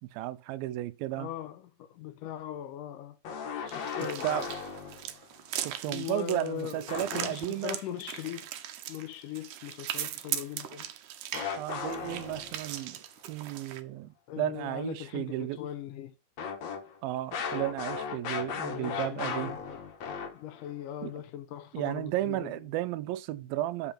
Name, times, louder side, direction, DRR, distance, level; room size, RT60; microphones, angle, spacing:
voice 1, 0.0-1.3 4.2-4.5 5.6-7.8 11.6-13.0 13.3-15.6 17.0-19.5 21.0-21.1 21.7-23.9, right 14 dB, 90° right, 2.5 m, -34 dB
voice 2, 1.1-3.2 3.7-4.5 5.8-8.5 8.9-10.9 14.3-16.1 18.3-19.8 20.3-22.5, left 11 dB, 75° left, 2.1 m, -40 dB
sound 1, 3.2-5.2 6.9-7.7 11.3-12.8 16.4-20.7, left 6 dB, 60° left, 2.4 m, -36 dB
sound 2, 3.7-13.8, right 11 dB, 75° right, 2.0 m, -39 dB
9.0 x 7.7 x 4.3 m
omnidirectional pair, 4.1 m